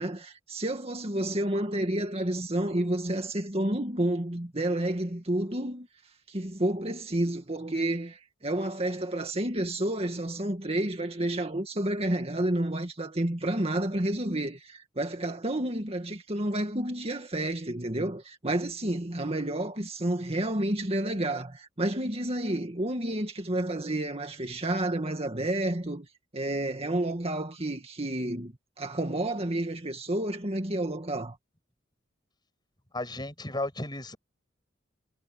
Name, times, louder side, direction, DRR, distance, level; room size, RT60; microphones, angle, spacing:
voice 1, 0.0-5.9 6.3-26.1 26.3-31.4, right 1 dB, 30° right, 2.0 m, -30 dB
voice 2, 32.9-34.2, left 2 dB, 25° left, 6.3 m, -34 dB
head